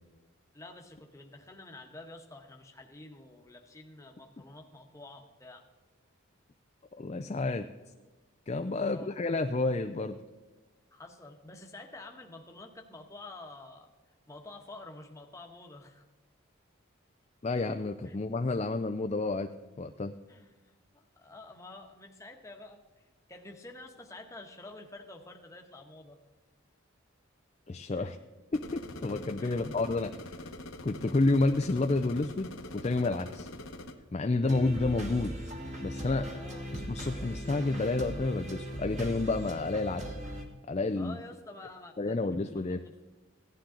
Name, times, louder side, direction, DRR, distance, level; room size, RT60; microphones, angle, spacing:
voice 1, 0.5-5.6 8.7-9.2 10.9-13.9 14.3-16.0 18.0-18.2 20.3-26.2 27.9-28.1 29.4-29.6 36.3-36.7 41.0-43.0, left 2 dB, 15° left, 3 dB, 1.1 m, -49 dB
voice 2, 7.0-7.7 8.5-10.2 17.4-19.5 19.8-20.1 27.7-28.2 28.5-30.4 30.8-33.5 34.1-35.3 35.8-36.4 36.7-40.0 40.7-41.2 42.0-42.8, left 2 dB, 30° left, 7 dB, 0.4 m, -30 dB
sound 1, 28.5-33.9, left 1 dB, 70° left, 1.0 m, -44 dB
sound 2, 34.5-40.4, equal, 35° right, 1.8 m, -39 dB
16.5 x 11.5 x 3.8 m, 1.2 s
head